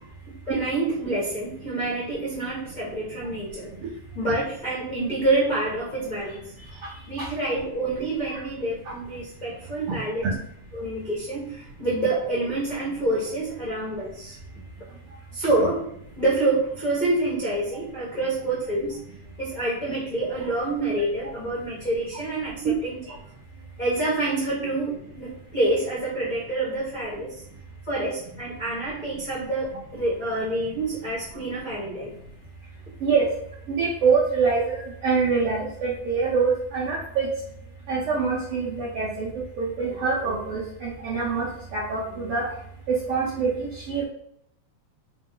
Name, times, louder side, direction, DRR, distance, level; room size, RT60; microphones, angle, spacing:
voice 1, 0.5-3.7 4.1-6.4 7.1-10.3 10.7-14.3 15.3-15.8 16.2-19.0 19.4-23.0 23.8-27.3 27.9-32.1, right 2 dB, 60° left, -8 dB, 0.4 m, -27 dB
voice 2, 33.7-37.3 37.9-42.5 42.9-44.0, right 5 dB, 65° right, -6 dB, 1.4 m, -25 dB
4.9 x 2.1 x 3.7 m, 0.70 s
omnidirectional pair, 3.5 m